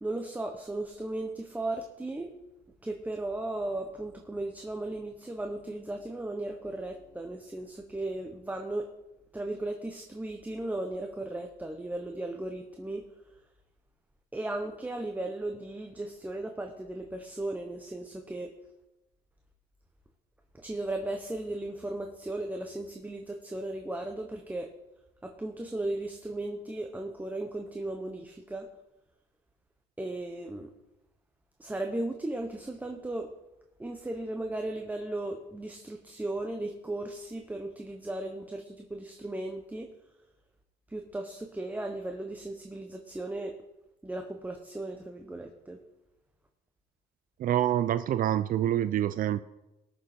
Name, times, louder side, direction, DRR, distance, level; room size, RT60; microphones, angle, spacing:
voice 1, 0.0-2.3 2.8-8.9 9.3-13.1 14.3-18.5 20.6-24.7 25.2-28.7 30.0-30.7 31.6-33.3 33.8-39.9 40.9-43.6 44.0-45.8, right 2 dB, 10° right, 4 dB, 1.0 m, -36 dB
voice 2, 47.4-49.4, right 11 dB, 55° right, 13 dB, 0.5 m, -26 dB
19.5 x 6.8 x 4.4 m, 0.98 s
cardioid pair, 110°, 17 cm